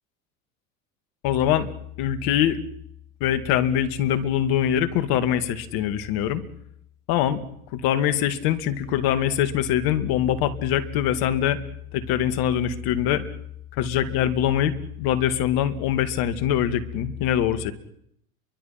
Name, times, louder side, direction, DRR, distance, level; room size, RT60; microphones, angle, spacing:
voice 1, 1.2-1.7 2.0-2.6 3.2-6.4 7.1-7.4 7.7-11.6 11.9-13.2 13.8-17.7, left 10 dB, 55° left, 11 dB, 2.4 m, -23 dB
29.5 x 24.0 x 6.0 m, 0.75 s
hypercardioid pair, 90°, 43 cm